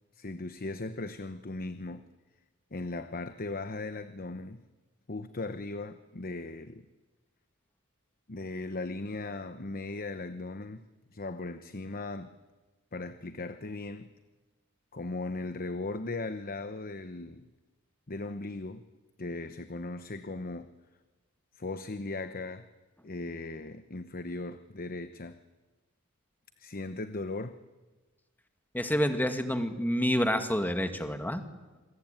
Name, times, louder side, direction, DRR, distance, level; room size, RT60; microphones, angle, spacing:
voice 1, 0.1-2.1 2.7-4.6 5.1-6.8 8.3-10.8 11.1-12.3 12.9-14.1 14.9-17.5 18.1-18.8 19.2-20.7 21.5-22.7 23.0-25.4 26.6-27.6, left 2 dB, 40° left, 10 dB, 1.0 m, -38 dB
voice 2, 28.7-31.4, equal, 10° left, 7 dB, 2.0 m, -28 dB
27.5 x 22.5 x 9.1 m, 1.2 s
head